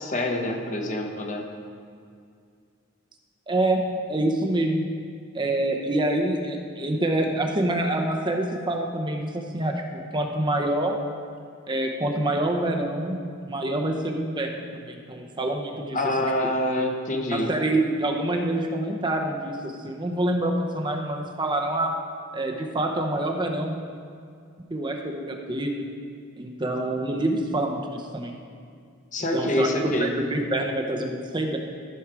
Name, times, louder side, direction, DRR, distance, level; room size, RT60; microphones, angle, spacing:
voice 1, 0.0-1.4 15.9-17.5 29.1-30.1, left 1 dB, 40° left, 3 dB, 1.0 m, -26 dB
voice 2, 3.5-3.8 4.1-4.8 5.3-11.0 11.7-16.0 17.3-21.9 22.3-23.8 24.7-25.9 26.4-28.4 29.3-31.6, right 1 dB, 25° right, 2 dB, 0.8 m, -26 dB
13.5 x 6.4 x 4.7 m, 2.3 s
head